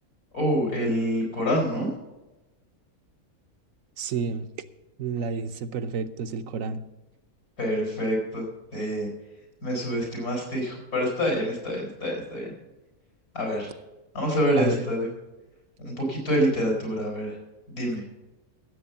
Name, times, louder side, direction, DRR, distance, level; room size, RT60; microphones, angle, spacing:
voice 1, 0.3-1.9 7.6-8.5 8.7-9.1 9.6-12.5 13.3-13.7 14.1-15.1 15.8-17.4 17.7-18.0, equal, 80° left, 0 dB, 4.7 m, -26 dB
voice 2, 4.0-4.5 5.0-6.8 14.6-14.8, right 5 dB, 65° right, 11 dB, 1.1 m, -30 dB
15.5 x 7.8 x 5.6 m, 1.1 s
omnidirectional pair, 1.6 m